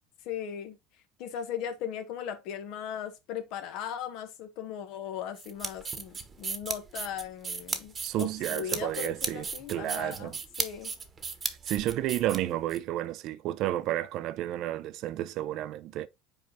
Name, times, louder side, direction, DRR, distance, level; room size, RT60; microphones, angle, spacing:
voice 1, 0.2-0.8 1.2-10.9, left 9 dB, 65° left, 1.4 m, -38 dB
sound 1, 5.4-12.8, right 5 dB, 30° right, 1.1 m, -35 dB
voice 2, 8.0-10.4 11.5-16.1, right 13 dB, 60° right, 0.5 m, -32 dB
5.3 x 4.5 x 3.9 m
hypercardioid pair, 85°, 0 cm